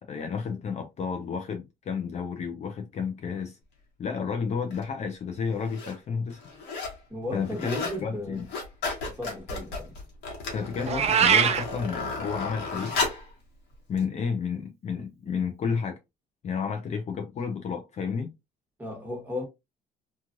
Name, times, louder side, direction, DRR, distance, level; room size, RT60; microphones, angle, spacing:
voice 1, 0.0-3.6 4.0-6.4 7.3-8.5 10.5-13.0 13.9-16.0 16.4-18.3, left 6 dB, 40° left, 0.6 m, -31 dB
sound 1, 4.7-4.8 5.5-6.0 6.3-7.0 7.3-8.0 8.3-13.3 14.0-14.1, left 3 dB, 80° left, 1.4 m, -34 dB
voice 2, 7.1-8.5 9.0-10.0 18.8-19.4, left 1 dB, 10° right, 1.3 m, -35 dB
Meow, 10.9-11.6, right 8 dB, 40° right, 0.4 m, -21 dB
3.0 x 2.4 x 2.5 m
cardioid pair, 110°, 17 cm